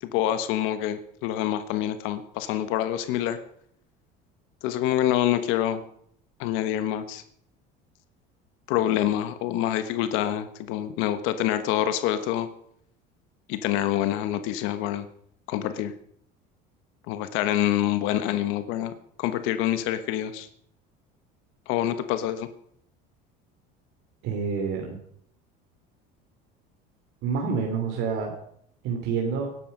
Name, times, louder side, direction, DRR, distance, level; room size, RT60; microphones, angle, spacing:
voice 1, 0.0-3.4 4.6-5.8 6.4-7.2 8.7-12.5 13.5-15.1 15.5-15.9 17.1-18.9 19.2-20.5 21.7-22.5, left 12 dB, 80° left, 10 dB, 1.3 m, -26 dB
voice 2, 24.2-25.0 27.2-28.3 28.8-29.5, right 5 dB, 70° right, 1 dB, 3.0 m, -27 dB
18.5 x 11.0 x 5.4 m, 0.66 s
cardioid pair, 130°, 21 cm